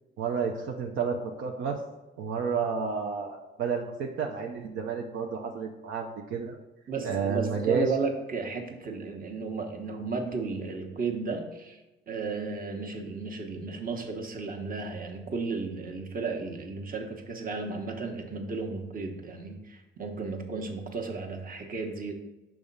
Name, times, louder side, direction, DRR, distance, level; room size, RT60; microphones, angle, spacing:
voice 1, 0.2-1.8 2.2-6.6 7.0-7.9, right 5 dB, 80° right, 2 dB, 0.7 m, -31 dB
voice 2, 6.9-11.8 12.1-22.1, right 4 dB, 45° right, 3 dB, 1.1 m, -34 dB
6.0 x 3.5 x 5.3 m, 1.0 s
cardioid pair, 90°, 20 cm